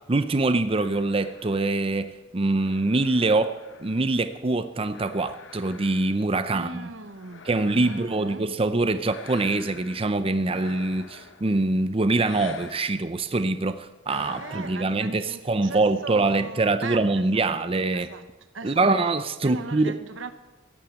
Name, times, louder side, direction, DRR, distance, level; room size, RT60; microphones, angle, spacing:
voice 1, 0.1-6.9 7.5-18.1 18.6-20.0, right 2 dB, 30° right, 0.6 m, -24 dB
sound 1, 0.7-4.4 4.9-6.4 7.0-8.4 9.1-10.1 10.5-11.7 12.2-13.0 14.1-15.0, left 5 dB, 80° left, 1.2 m, -46 dB
voice 2, 6.5-7.5 7.8-8.5 14.2-18.3 18.5-18.9 19.4-20.3, right 3 dB, 90° right, 1.2 m, -39 dB
16.0 x 10.0 x 8.0 m
head